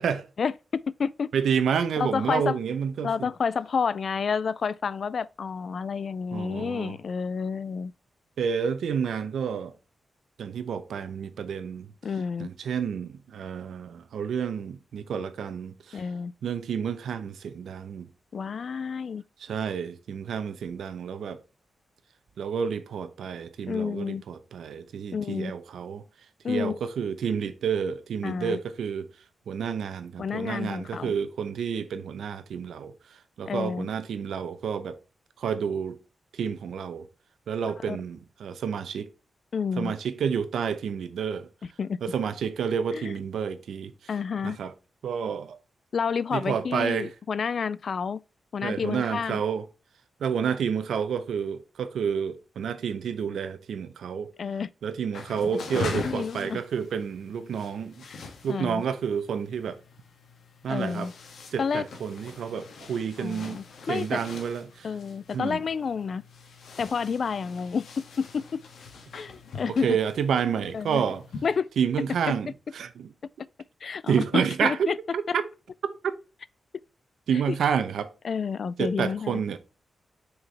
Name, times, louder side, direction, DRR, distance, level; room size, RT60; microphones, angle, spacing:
voice 1, 0.4-1.3 2.0-2.6 3.0-7.9 12.0-12.5 15.9-16.3 18.3-19.2 23.7-24.2 25.1-25.5 26.4-26.8 28.2-28.6 30.2-31.1 33.5-33.9 37.9-38.0 39.5-39.9 41.8-42.0 42.9-43.1 44.1-44.6 45.9-48.2 48.5-49.4 54.4-54.7 55.5-55.6 56.0-56.6 58.0-58.2 58.5-58.8 60.7-61.1 61.6-61.9 63.2-64.2 64.8-66.2 66.8-67.9 68.2-68.6 69.1-70.0 70.7-71.0 71.4-71.7 73.8-75.0 77.5-77.6 78.2-79.4, left 6 dB, 55° left, 0.3 m, -29 dB
voice 2, 1.3-3.3 6.3-6.9 8.4-9.7 10.4-11.9 12.4-16.0 16.4-18.1 19.4-21.4 22.4-26.0 26.5-29.1 29.5-35.0 35.4-36.0 36.3-37.1 37.5-39.1 39.8-41.5 42.0-43.9 44.4-44.7 45.0-45.6 46.3-47.1 48.6-49.7 50.2-54.3 54.8-58.0 58.4-59.8 60.6-61.1 61.5-63.6 63.9-64.9 65.3-65.6 69.7-71.2 71.8-73.1 74.1-74.9 75.3-75.4 77.3-78.1 78.8-79.6, right 7 dB, 90° right, 0.8 m, -29 dB
sound 1, 55.1-71.6, left 4 dB, 80° left, 1.5 m, -42 dB
6.5 x 4.7 x 3.3 m
wide cardioid pair, 130°, 0 cm